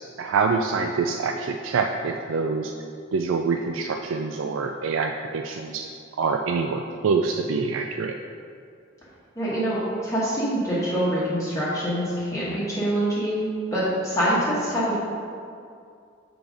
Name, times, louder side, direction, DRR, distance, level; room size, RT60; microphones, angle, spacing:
voice 1, 0.0-2.7 3.1-5.9 6.2-8.1, right 4 dB, 80° right, 4 dB, 0.4 m, -25 dB
voice 2, 9.4-15.0, equal, 15° left, -10 dB, 1.3 m, -25 dB
6.9 x 3.9 x 5.0 m, 2.4 s
head